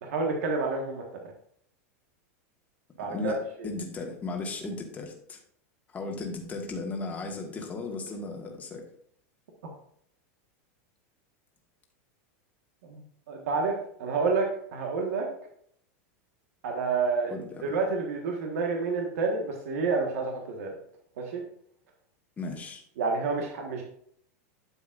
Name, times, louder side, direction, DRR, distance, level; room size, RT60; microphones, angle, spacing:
voice 1, 0.0-1.0 3.0-3.7 12.8-13.0 13.3-15.3 16.6-17.4 17.6-20.7 21.2-21.4 23.0-23.8, right 4 dB, 75° right, 1 dB, 1.5 m, -29 dB
voice 2, 3.1-5.4 5.9-8.8 17.3-17.6 22.4-22.8, left 3 dB, 20° left, 1 dB, 1.5 m, -36 dB
9.7 x 7.2 x 2.5 m, 0.66 s
supercardioid pair, 140°, 8 cm